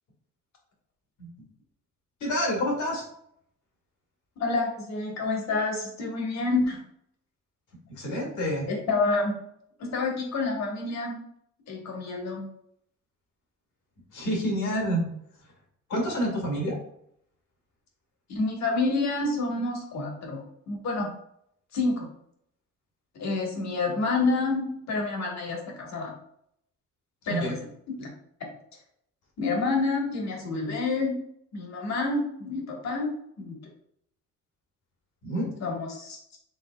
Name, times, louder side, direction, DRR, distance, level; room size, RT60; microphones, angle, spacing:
voice 1, 2.2-3.1 7.9-8.7 14.1-15.0 15.9-16.8 27.3-27.6 35.2-35.5, equal, 80° left, 0 dB, 1.8 m, -28 dB
voice 2, 4.4-6.8 8.7-9.4 9.8-11.2 11.7-12.5 18.3-21.1 21.7-22.1 23.1-26.1 27.3-27.6 27.9-28.1 29.4-31.2 31.5-33.1 33.4-33.6 35.6-36.2, left 3 dB, 60° left, 0 dB, 1.4 m, -28 dB
5.3 x 3.7 x 2.3 m, 0.71 s
cardioid pair, 90°, 30 cm